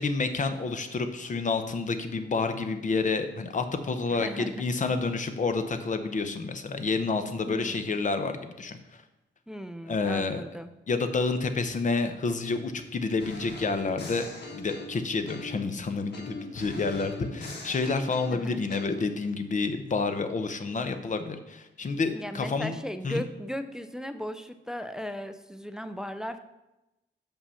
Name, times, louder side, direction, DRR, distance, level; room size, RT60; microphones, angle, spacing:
voice 1, 0.0-8.8 9.9-10.4 10.9-14.3 14.5-22.8 23.0-23.2, left 4 dB, 40° left, 8 dB, 0.7 m, -29 dB
voice 2, 4.1-4.7 7.4-8.0 9.5-10.7 18.3-18.6 22.1-26.4, equal, 5° right, 10 dB, 0.4 m, -37 dB
sound 1, 13.2-15.7 16.1-19.0, left 2 dB, 60° left, 1.5 m, -41 dB
7.0 x 5.6 x 5.6 m, 0.97 s
wide cardioid pair, 145°, 19 cm